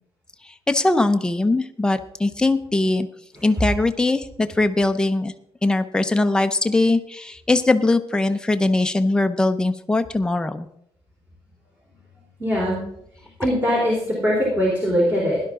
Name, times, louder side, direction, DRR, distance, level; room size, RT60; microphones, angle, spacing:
voice 1, 0.7-3.1 3.4-5.3 5.6-10.7, left 2 dB, 5° left, 7 dB, 0.6 m, -21 dB
voice 2, 12.4-12.8 13.4-15.4, equal, 20° right, -4 dB, 3.2 m, -21 dB
16.5 x 11.0 x 3.6 m, 0.75 s
cardioid pair, 180°, 11 cm